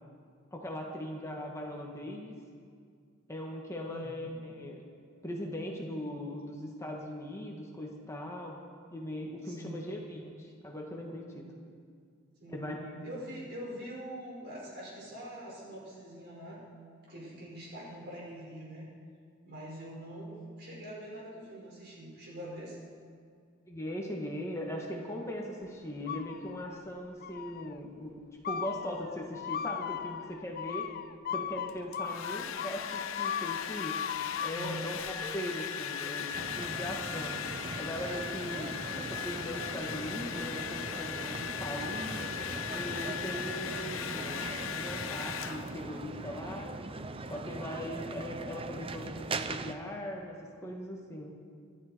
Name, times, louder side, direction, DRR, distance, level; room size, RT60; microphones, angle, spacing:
voice 1, 0.5-2.3 3.3-4.8 5.2-8.6 8.9-11.5 12.5-12.9 23.7-30.9 31.3-34.0 34.4-36.3 36.6-37.4 37.8-42.3 42.7-46.8 47.3-51.3, equal, 15° left, -1 dB, 1.6 m, -39 dB
voice 2, 3.9-4.3 9.4-10.0 12.4-16.6 17.1-18.9 19.4-22.8 34.5-34.9 38.4-38.8, equal, 55° right, -5 dB, 5.5 m, -44 dB
sound 1, 26.1-26.8 27.2-27.8 28.4-34.8, left 8 dB, 45° left, 0.4 m, -37 dB
Domestic sounds home sounds, 31.7-46.0, left 8 dB, 90° left, 0.7 m, -38 dB
sound 2, 36.3-49.7, right 3 dB, 30° right, 0.6 m, -40 dB
25.0 x 12.0 x 4.6 m, 2.2 s
head